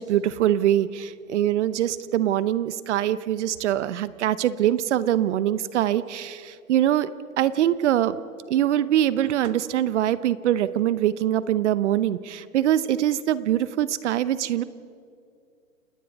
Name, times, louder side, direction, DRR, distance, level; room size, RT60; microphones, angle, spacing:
voice 1, 0.0-7.1 7.4-8.2 8.5-14.6, right 11 dB, 55° right, 16 dB, 0.9 m, -23 dB
29.5 x 19.5 x 5.4 m, 2.3 s
hypercardioid pair, 125°, 41 cm